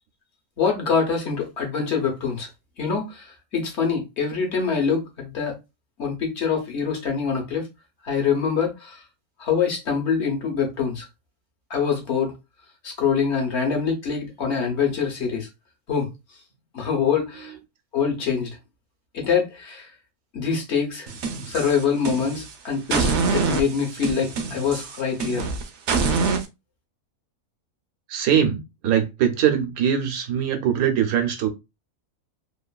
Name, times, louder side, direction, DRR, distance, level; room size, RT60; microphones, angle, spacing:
voice 1, 0.6-2.5 2.8-5.6 6.0-7.7 8.0-9.0 9.4-11.1 11.7-12.3 12.8-15.5 15.9-16.1 16.7-17.5 17.9-18.5 19.1-19.9 20.3-21.1 21.5-25.5, left 6 dB, 55° left, 1.0 m, -24 dB
sound 1, 21.1-22.5 22.9-26.5, right 4 dB, 65° right, 0.8 m, -25 dB
voice 2, 28.1-31.5, right 9 dB, 85° right, 1.2 m, -22 dB
3.0 x 2.4 x 2.2 m
omnidirectional pair, 1.5 m